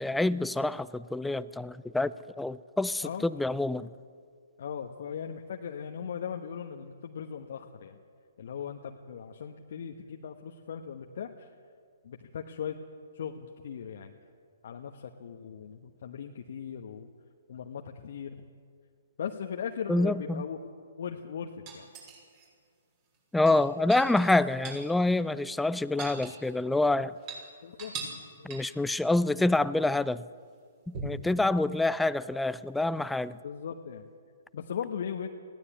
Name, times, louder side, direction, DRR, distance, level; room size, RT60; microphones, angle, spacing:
voice 1, 0.0-3.9 19.9-20.4 23.3-27.1 28.4-30.2 30.9-33.4, left 2 dB, 5° left, 16 dB, 0.4 m, -27 dB
voice 2, 4.6-8.0 8.4-11.5 12.0-12.8 13.1-14.2 14.6-17.1 17.5-18.4 19.2-20.6 21.0-21.9 27.6-27.9 28.4-28.6 33.4-34.1 34.5-35.3, left 7 dB, 55° left, 3 dB, 1.2 m, -38 dB
sound 1, 21.7-22.5 23.3-24.9 25.2-25.3 25.6-26.8 27.1-27.4 27.8-28.2 28.5-28.8 30.9-31.3 33.0-33.1, right 4 dB, 35° right, 6.4 m, -41 dB
20.0 x 16.0 x 8.5 m, 2.1 s
figure-of-eight pair, 125°, 0 cm